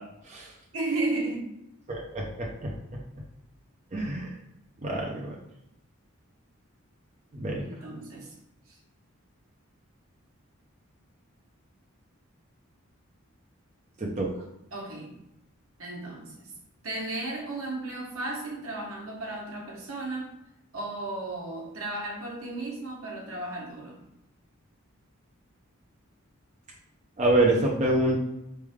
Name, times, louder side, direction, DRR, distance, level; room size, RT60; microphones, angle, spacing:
voice 1, 0.7-1.5 7.6-8.3 14.7-15.2 15.8-16.5 16.8-20.3 20.7-24.0, right 2 dB, 80° right, -1 dB, 1.2 m, -34 dB
voice 2, 1.9-2.7 3.9-4.3 4.8-5.3 7.3-7.6 14.0-14.3 27.2-28.2, right 2 dB, 35° right, -2 dB, 0.6 m, -26 dB
4.2 x 3.3 x 3.5 m, 0.80 s
head